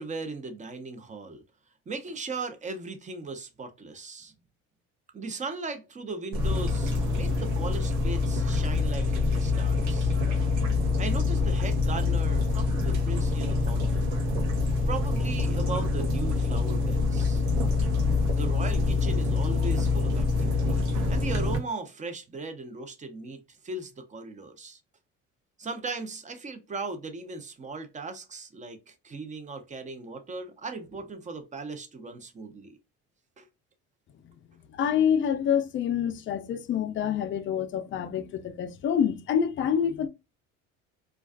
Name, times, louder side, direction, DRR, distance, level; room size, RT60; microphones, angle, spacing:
voice 1, 0.0-1.4 1.9-4.3 5.1-10.1 11.0-14.2 14.9-17.4 18.3-24.8 25.6-32.8 33.4-33.5, right 3 dB, 25° right, 0.6 m, -38 dB
sound 1, 6.3-21.6, left 3 dB, 90° right, 0.8 m, -25 dB
voice 2, 34.7-40.1, left 8 dB, 40° left, 0.4 m, -27 dB
2.4 x 2.3 x 2.3 m
cardioid pair, 100°, 30 cm